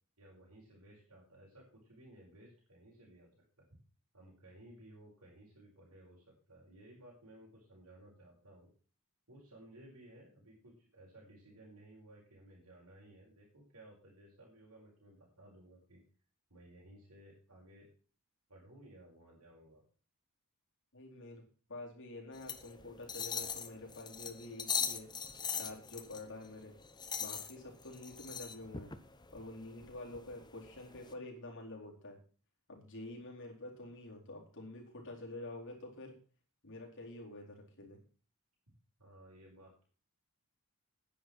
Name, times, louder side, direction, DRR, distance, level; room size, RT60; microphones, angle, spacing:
voice 1, 0.2-3.3 3.6-3.7 4.1-8.7 9.3-16.0 16.5-17.9 18.5-19.8 39.0-39.8, right 1 dB, 85° right, -3 dB, 5.0 m, -58 dB
voice 2, 20.9-21.4 21.7-25.1 25.5-26.7 27.2-28.9 29.3-32.2 32.7-36.2 36.6-38.0, left 2 dB, 60° left, -1 dB, 4.2 m, -48 dB
sound 1, 22.3-31.1, left 6 dB, 20° left, 0.9 m, -41 dB
10.5 x 10.0 x 6.1 m, 0.40 s
head